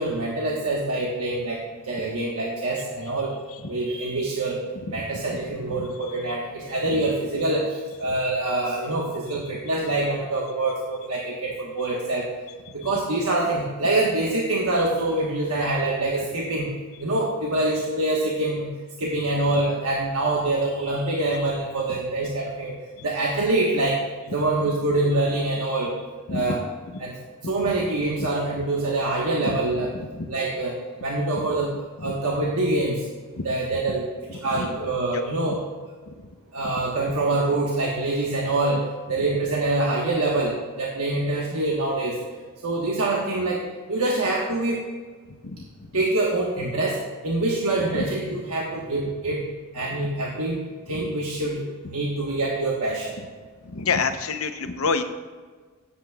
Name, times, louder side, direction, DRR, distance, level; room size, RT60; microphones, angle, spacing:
voice 1, 0.0-3.3 3.7-4.6 4.9-12.3 12.7-16.7 17.0-18.7 19.0-22.7 23.0-24.0 24.3-26.0 26.3-26.6 27.0-27.2 27.4-29.9 30.3-31.7 32.0-33.0 33.4-34.0 34.3-35.6 36.5-42.2 42.6-43.6 43.9-44.8 45.9-47.0 47.2-49.4 49.7-53.2, right 2 dB, 80° right, -3 dB, 1.3 m, -25 dB
voice 2, 53.6-55.0, left 4 dB, 70° left, 8 dB, 0.8 m, -27 dB
16.5 x 8.3 x 2.4 m, 1.5 s
head